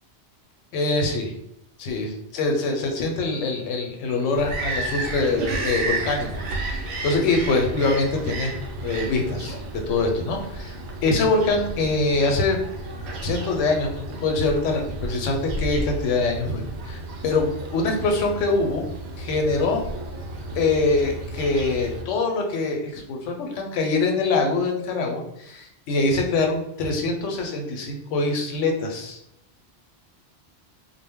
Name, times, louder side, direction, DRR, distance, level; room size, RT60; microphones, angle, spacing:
voice 1, 0.7-1.3 1.8-6.3 6.5-8.5 8.8-10.7 11.0-12.6 13.2-18.9 19.2-19.8 20.6-29.2, left 3 dB, 85° left, 2 dB, 0.9 m, -24 dB
Bird vocalization bird call bird song, 4.3-22.0, right 2 dB, 70° right, 0.8 m, -32 dB
2.2 x 2.0 x 3.4 m, 0.79 s
omnidirectional pair, 1.2 m